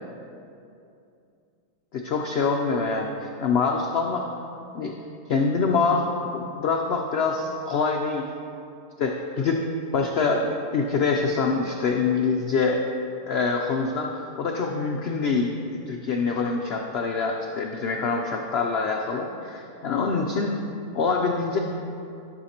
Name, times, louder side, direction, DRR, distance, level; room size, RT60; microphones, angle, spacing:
voice 1, 1.9-4.3 4.7-5.0 5.3-6.1 6.3-8.3 9.0-9.6 9.9-12.8 13.3-20.5 20.9-21.6, left 4 dB, 85° left, 2 dB, 0.5 m, -25 dB
12.5 x 6.4 x 2.8 m, 2.6 s
omnidirectional pair, 1.7 m